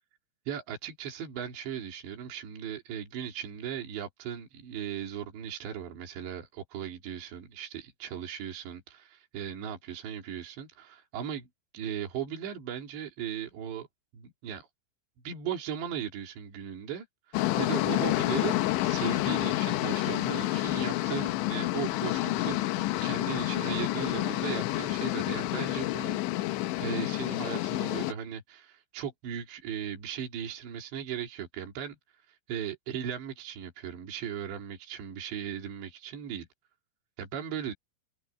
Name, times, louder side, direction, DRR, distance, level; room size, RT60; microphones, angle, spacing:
voice 1, 0.5-11.5 11.7-13.9 14.1-14.7 15.3-18.6 18.8-26.5 26.8-32.0 32.3-36.5 37.2-37.7, right 9 dB, 65° right, 5.6 m, -37 dB
sound 1, 17.3-28.1, left 17 dB, 80° left, 3.1 m, -29 dB
omnidirectional pair, 5.5 m